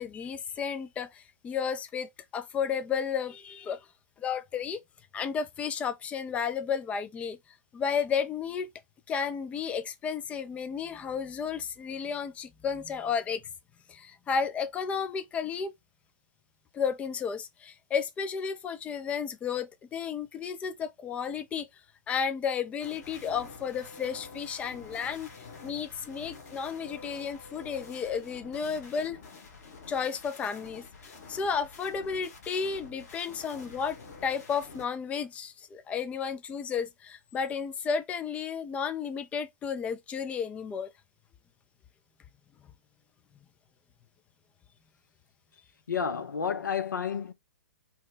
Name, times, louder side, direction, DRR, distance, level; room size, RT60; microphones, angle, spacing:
voice 1, 0.0-3.9 4.2-4.8 5.1-7.4 7.7-8.7 9.1-13.4 13.9-15.7 16.7-21.7 22.1-25.3 25.6-29.2 29.9-40.9, left 6 dB, 15° left, 0.3 m, -33 dB
sound 1, 22.8-34.9, left 4 dB, 55° left, 1.1 m, -48 dB
voice 2, 45.9-47.3, left 7 dB, 80° left, 0.5 m, -31 dB
2.8 x 2.1 x 3.7 m
figure-of-eight pair, 120°, 10 cm